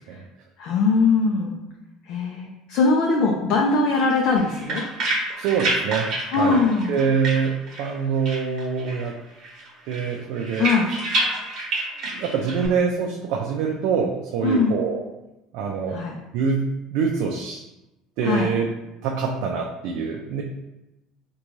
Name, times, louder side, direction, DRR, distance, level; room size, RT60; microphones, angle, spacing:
voice 1, 0.6-1.6 2.1-4.9 6.3-6.9 10.6-10.9 12.6-12.8 14.4-14.8 15.9-16.2 18.2-18.5, left 4 dB, 60° left, -1 dB, 0.5 m, -21 dB
sound 1, 4.2-8.0 8.3-9.1 9.4-12.7, right 2 dB, 50° right, 1.0 m, -28 dB
voice 2, 5.4-6.6 6.9-9.1 9.9-10.7 12.1-15.0 15.5-16.0 16.3-17.6 18.2-18.7 19.0-20.4, right 6 dB, 65° right, 1 dB, 0.4 m, -25 dB
3.8 x 2.2 x 3.0 m, 0.98 s
cardioid pair, 135°, 0 cm